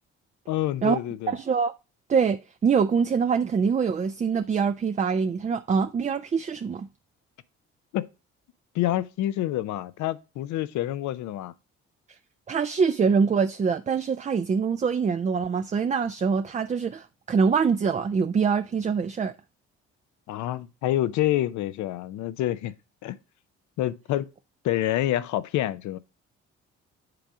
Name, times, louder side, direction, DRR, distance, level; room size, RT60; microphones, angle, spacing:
voice 1, 0.5-1.3 7.9-8.1 8.7-11.5 20.3-22.7 23.0-23.2 23.8-24.3 24.6-26.0, left 13 dB, 75° left, 0.6 m, -27 dB
voice 2, 1.3-1.7 2.1-6.9 12.5-19.3, right 6 dB, 25° right, 0.4 m, -24 dB
7.8 x 3.5 x 4.9 m
supercardioid pair, 65°, 29 cm